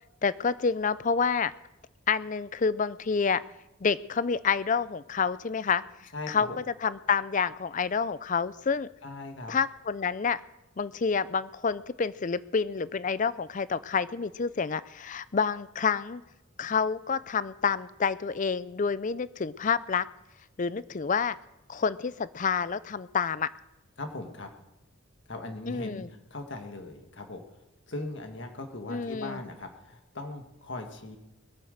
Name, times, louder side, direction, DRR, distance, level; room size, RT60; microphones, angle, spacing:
voice 1, 0.2-1.5 2.1-3.4 3.8-8.9 9.5-10.4 10.8-16.2 16.6-20.1 20.6-21.4 21.7-23.5 25.7-26.1 28.9-29.4, left 5 dB, 35° left, 17 dB, 0.4 m, -28 dB
voice 2, 6.1-6.6 9.0-9.5 24.0-24.5 25.3-27.4 27.9-31.2, left 2 dB, 55° left, 5 dB, 1.7 m, -39 dB
21.0 x 9.0 x 6.6 m, 0.95 s
head